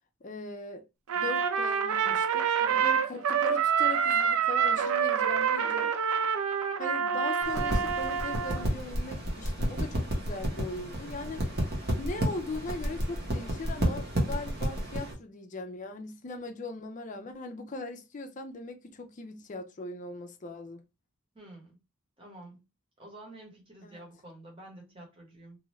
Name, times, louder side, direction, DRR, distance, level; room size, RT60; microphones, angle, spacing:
voice 1, 0.2-0.8 1.2-5.9 6.8-11.5 12.0-20.8 23.8-24.0, left 2 dB, 35° left, 0.4 m, -39 dB
Trumpet, 1.1-8.6, right 7 dB, 85° right, 0.4 m, -27 dB
voice 2, 2.6-3.0 5.6-5.9 21.3-21.8 22.2-22.6 23.0-25.6, right 1 dB, 25° right, 1.0 m, -49 dB
sound 1, 7.4-15.1, equal, 50° right, 1.0 m, -31 dB
2.6 x 2.4 x 3.1 m
head